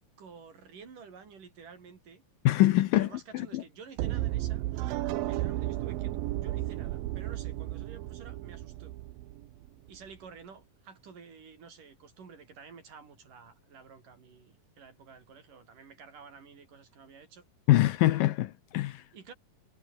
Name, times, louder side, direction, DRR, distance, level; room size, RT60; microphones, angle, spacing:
voice 1, 0.2-2.2 2.9-9.0 9.9-17.5 19.1-19.3, right 5 dB, 60° right, 5.6 m, -51 dB
voice 2, 2.5-3.1 3.3-3.6 17.7-19.0, left 16 dB, 75° left, 2.4 m, -24 dB
sound 1, 4.0-10.0, right 15 dB, 75° right, 2.7 m, -33 dB
omnidirectional pair, 4.4 m